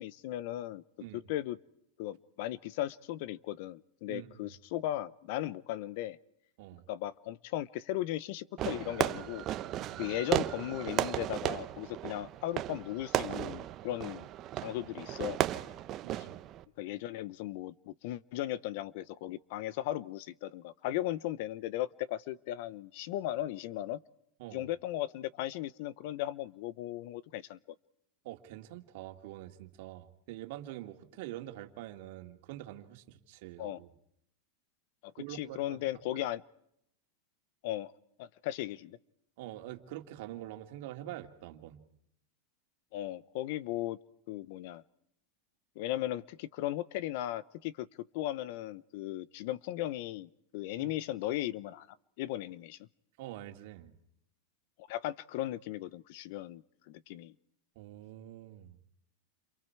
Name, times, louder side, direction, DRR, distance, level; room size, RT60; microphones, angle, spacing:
voice 1, 0.0-0.8 1.3-1.6 2.0-6.2 6.9-9.5 10.0-14.3 14.6-15.4 16.8-24.0 24.5-27.6 33.6-33.8 35.0-36.4 37.6-37.9 38.2-39.0 42.9-44.0 44.3-44.8 45.8-47.9 48.1-51.9 52.2-52.8 54.8-57.3, left 14 dB, 60° left, 20 dB, 0.9 m, -37 dB
Fireworks, 8.6-16.6, right 13 dB, 35° right, 1.0 m, -35 dB
voice 2, 16.0-16.3 24.4-24.6 28.2-33.9 35.2-35.8 36.1-36.2 39.4-41.8 50.8-50.9 53.2-53.9 57.8-58.8, right 14 dB, 65° right, 5 dB, 2.5 m, -45 dB
29.5 x 28.0 x 4.8 m, 0.74 s
supercardioid pair, 135°, 0 cm